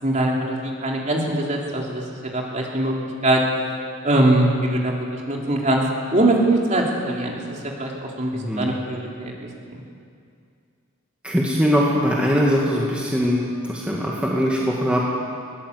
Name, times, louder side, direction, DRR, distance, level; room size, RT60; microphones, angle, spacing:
voice 1, 0.0-2.0 2.3-2.9 3.2-3.4 4.0-4.9 5.3-5.8 6.1-7.4 7.8-8.3 8.6-9.3, right 1 dB, 35° right, -1 dB, 3.5 m, -21 dB
voice 2, 8.3-8.8 11.2-15.0, equal, 5° right, -4 dB, 2.2 m, -21 dB
21.0 x 18.5 x 8.3 m, 2.3 s
head